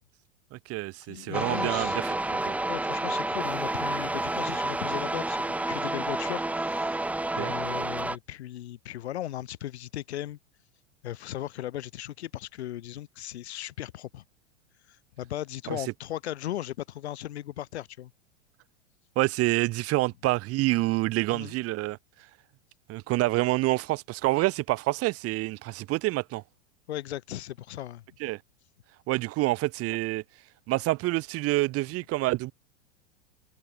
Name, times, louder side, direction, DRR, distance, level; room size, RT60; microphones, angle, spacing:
voice 1, 0.5-2.1 2.5-2.6 7.3-7.5 15.7-15.8 19.2-22.0 22.9-26.4 28.2-28.4 29.1-30.2 30.7-32.5, right 19 dB, 45° right, 2.7 m, -27 dB
voice 2, 1.1-2.0 2.4-7.0 7.4-10.4 11.0-14.2 14.9-18.1 21.3-21.6 26.9-28.0 29.9-30.0, left 13 dB, 75° left, 4.0 m, -37 dB
sound 1, 1.3-8.2, right 2 dB, 5° right, 0.9 m, -30 dB
hypercardioid pair, 100°, 33 cm